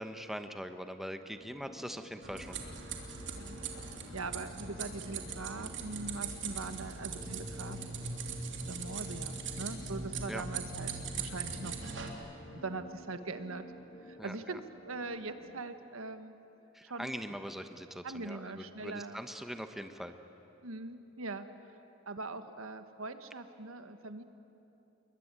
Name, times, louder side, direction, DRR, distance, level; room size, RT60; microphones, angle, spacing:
voice 1, 0.0-2.6 5.5-5.7 10.3-10.4 14.2-14.6 16.7-20.1, equal, ahead, 7 dB, 1.0 m, -42 dB
sound 1, 1.4-15.6, right 1 dB, 25° left, 1.5 m, -53 dB
sound 2, 2.2-12.1, right 4 dB, 60° right, 2.9 m, -40 dB
voice 2, 3.3-7.8 8.6-11.8 12.5-13.7 14.0-16.4 16.8-17.2 18.0-19.2 20.6-21.5 22.1-24.2, right 3 dB, 85° right, 9 dB, 1.5 m, -42 dB
29.0 x 22.5 x 9.0 m, 2.8 s
head